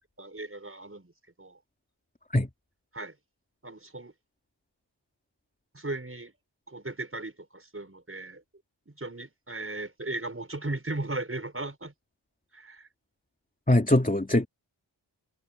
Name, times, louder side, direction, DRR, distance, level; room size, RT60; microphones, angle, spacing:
voice 1, 0.2-1.1 1.4-1.6 2.9-3.1 3.6-4.1 5.7-6.3 6.7-8.4 8.9-11.9 12.5-12.9, right 2 dB, 30° right, 6.5 m, -37 dB
voice 2, 13.7-14.5, left 1 dB, 20° left, 2.8 m, -22 dB
cardioid pair, 50°, 46 cm